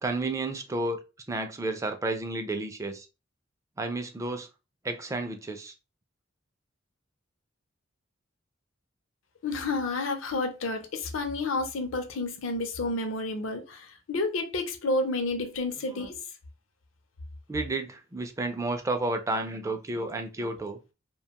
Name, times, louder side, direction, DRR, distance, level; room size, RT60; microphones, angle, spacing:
voice 1, 0.0-1.0 1.3-3.1 3.8-4.5 4.8-5.7 15.8-16.1 17.5-20.8, right 2 dB, 15° right, 0.3 m, -31 dB
voice 2, 9.4-16.1, left 2 dB, 75° left, 0.6 m, -30 dB
2.5 x 2.2 x 2.8 m
head